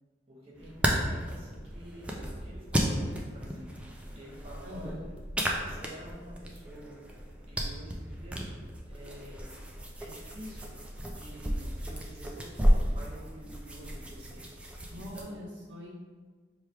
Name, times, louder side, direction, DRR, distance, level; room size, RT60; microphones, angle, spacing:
voice 1, 0.3-3.7 4.1-4.9 5.6-7.0 7.4-8.5 8.9-9.5 10.0-10.7 11.1-15.3, right 1 dB, 30° right, -6 dB, 1.1 m, -49 dB
sound 1, 0.5-15.2, equal, 5° right, 0.3 m, -33 dB
voice 2, 4.6-5.1 14.9-16.1, left 1 dB, 70° right, -4 dB, 0.6 m, -43 dB
3.3 x 2.3 x 4.4 m, 1.5 s
head